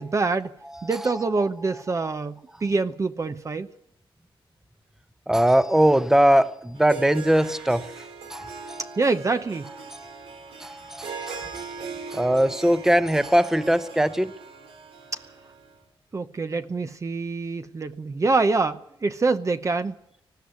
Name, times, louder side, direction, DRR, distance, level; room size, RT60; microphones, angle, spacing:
voice 1, 0.0-0.5 0.8-3.7 9.0-9.7 16.1-19.9, right 3 dB, 35° right, 0.8 m, -25 dB
voice 2, 0.7-1.5 1.9-2.1 5.3-9.0 9.9-14.3, right 1 dB, 5° right, 0.9 m, -22 dB
Harp, 6.8-15.8, right 5 dB, 90° right, 3.3 m, -40 dB
19.5 x 14.5 x 9.5 m
cardioid pair, 100°, 10 cm